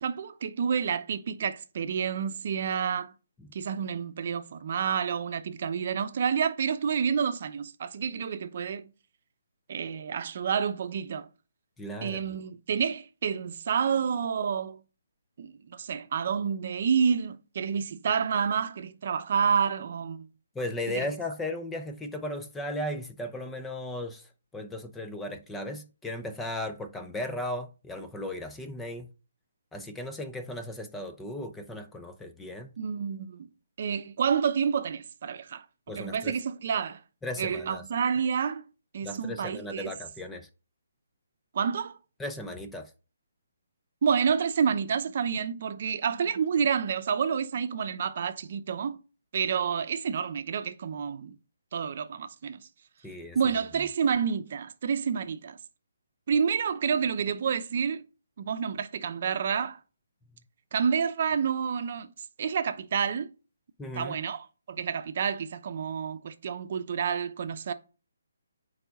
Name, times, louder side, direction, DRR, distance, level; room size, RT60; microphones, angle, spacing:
voice 1, 0.0-3.1 3.5-8.9 9.7-11.3 12.0-14.8 15.4-20.3 20.9-21.1 32.8-33.5 33.8-35.6 36.0-37.0 37.4-38.6 38.9-39.9 41.5-42.0 44.0-49.0 49.3-51.4 51.7-52.6 53.3-55.6 56.3-58.0 58.4-59.8 60.7-62.1 62.4-63.3 64.0-67.7, right 7 dB, 50° right, 0.8 m, -29 dB
voice 2, 11.8-12.2 20.5-24.3 24.5-29.1 29.7-32.7 35.9-36.3 37.2-37.8 39.0-40.5 42.2-42.9 53.0-53.4 63.8-64.2, left 1 dB, 10° left, 0.7 m, -36 dB
9.1 x 3.5 x 5.2 m
hypercardioid pair, 150°, 0 cm